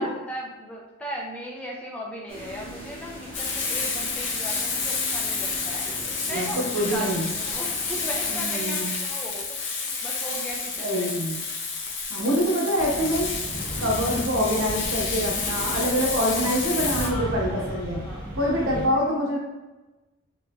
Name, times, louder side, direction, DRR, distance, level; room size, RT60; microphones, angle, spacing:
voice 1, 0.0-5.9 6.3-11.1 16.9-18.8, equal, 5° left, -3 dB, 0.4 m, -37 dB
sound 1, 2.3-8.4, left 1 dB, 30° left, 1.0 m, -41 dB
Frying (food), 3.3-17.1, left 4 dB, 55° left, 0.6 m, -30 dB
voice 2, 6.3-7.3 8.3-8.9 10.8-11.4 12.1-13.3 13.8-18.0 18.4-19.4, equal, 80° right, -3 dB, 0.9 m, -25 dB
sound 2, 12.8-18.9, equal, 25° right, 1.1 m, -35 dB
3.5 x 3.1 x 2.3 m, 1.1 s
head